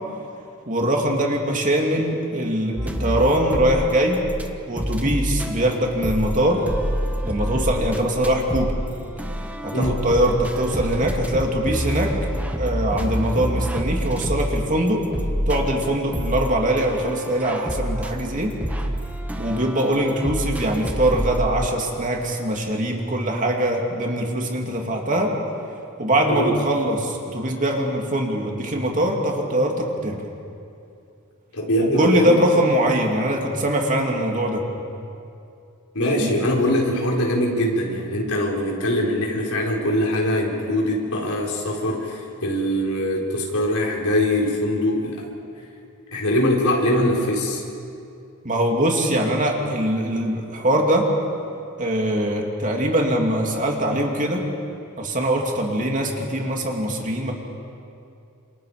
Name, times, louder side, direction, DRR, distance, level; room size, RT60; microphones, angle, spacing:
voice 1, 0.7-4.2 4.7-6.7 7.2-8.7 9.6-12.2 12.6-15.0 15.5-18.5 19.4-25.3 26.0-30.2 31.9-34.6 36.1-36.4 48.4-51.1 51.8-54.5 55.0-57.3, right 1 dB, 35° right, 0 dB, 2.9 m, -22 dB
sound 1, 2.8-4.5 4.8-21.5, equal, 5° right, 1.4 m, -28 dB
voice 2, 9.7-10.0 26.3-26.5 31.5-32.3 35.9-45.3 46.1-47.6, left 1 dB, 75° left, -2 dB, 4.8 m, -22 dB
30.0 x 27.0 x 5.2 m, 2.6 s
head